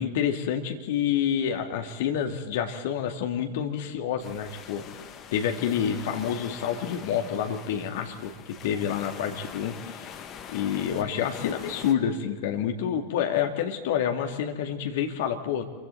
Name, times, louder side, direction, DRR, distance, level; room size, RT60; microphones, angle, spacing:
voice 1, 0.0-4.8 5.3-10.0 10.5-15.6, left 8 dB, 55° left, 5 dB, 2.2 m, -28 dB
sound 1, 4.2-11.9, left 8 dB, 30° left, 2.0 m, -43 dB
27.5 x 24.5 x 4.2 m, 1.4 s
figure-of-eight pair, 90°, 0 cm